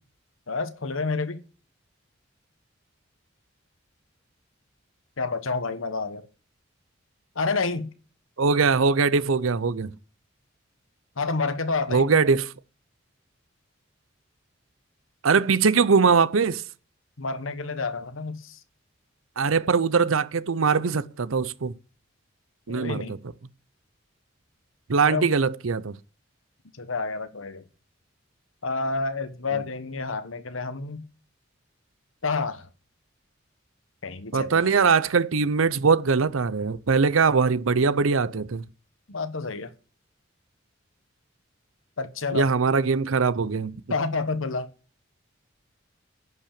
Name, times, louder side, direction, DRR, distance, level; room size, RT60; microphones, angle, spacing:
voice 1, 0.5-1.4 5.2-6.3 7.3-7.9 11.2-12.2 17.2-18.6 22.7-23.2 25.0-25.3 26.7-27.6 28.6-31.0 32.2-32.7 34.0-34.7 39.1-39.7 42.0-42.5 43.9-44.7, left 4 dB, 85° left, 1.2 m, -29 dB
voice 2, 8.4-9.9 11.9-12.5 15.2-16.6 19.4-21.7 22.7-23.2 24.9-25.9 34.3-38.7 42.3-43.8, right 5 dB, 90° right, 0.7 m, -22 dB
11.0 x 5.7 x 8.6 m
head